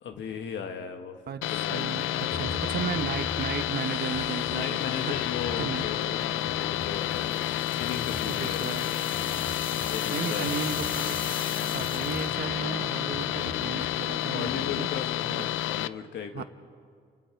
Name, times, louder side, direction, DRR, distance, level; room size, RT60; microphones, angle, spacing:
voice 1, 0.0-1.2 1.5-3.0 4.5-10.6 12.6-12.8 14.3-16.4, left 7 dB, 70° left, 5 dB, 1.5 m, -37 dB
voice 2, 1.3-5.2 5.6-5.8 8.2-8.9 10.1-11.2 11.6-14.9 15.3-15.6 16.3-16.4, right 7 dB, 55° right, 10 dB, 1.2 m, -35 dB
sound 1, 1.4-15.9, left 14 dB, 85° left, 0.5 m, -30 dB
sound 2, 2.3-14.8, left 2 dB, 20° left, 1.3 m, -42 dB
sound 3, 6.9-12.4, left 4 dB, 45° left, 2.2 m, -39 dB
29.5 x 24.5 x 4.6 m, 2.1 s
cardioid pair, 90°, 20 cm